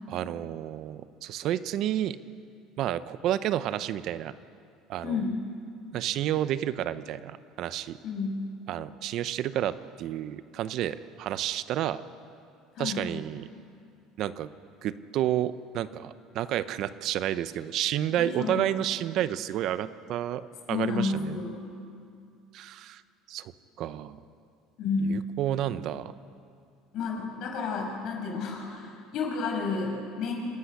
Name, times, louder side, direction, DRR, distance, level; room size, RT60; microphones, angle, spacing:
voice 1, 0.1-2.2 2.8-4.3 4.9-5.2 5.9-8.0 8.7-12.0 12.8-13.5 14.2-14.5 14.8-21.4 22.5-23.0 23.3-23.5 23.8-24.2 25.0-26.1, right 12 dB, 60° right, 14 dB, 0.8 m, -30 dB
voice 2, 5.0-5.3 8.0-8.4 12.8-13.1 18.2-18.7 20.7-21.6 24.8-25.1 26.9-30.3, left 4 dB, 60° left, 0 dB, 6.3 m, -31 dB
27.0 x 12.5 x 10.0 m, 2.4 s
supercardioid pair, 105°, 0 cm